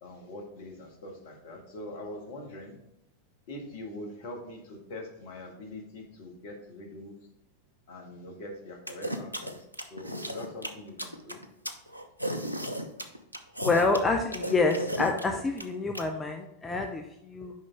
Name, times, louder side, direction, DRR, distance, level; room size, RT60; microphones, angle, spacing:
voice 1, 0.0-2.8 3.5-7.1 7.9-9.6 9.9-11.4, left 1 dB, 50° left, 2 dB, 1.6 m, -43 dB
sound 1, 8.9-16.0, equal, 90° left, 0.6 m, -34 dB
voice 2, 13.6-17.5, left 3 dB, 15° left, 4 dB, 0.5 m, -27 dB
6.4 x 5.3 x 3.5 m, 0.84 s
figure-of-eight pair, 90°, 0 cm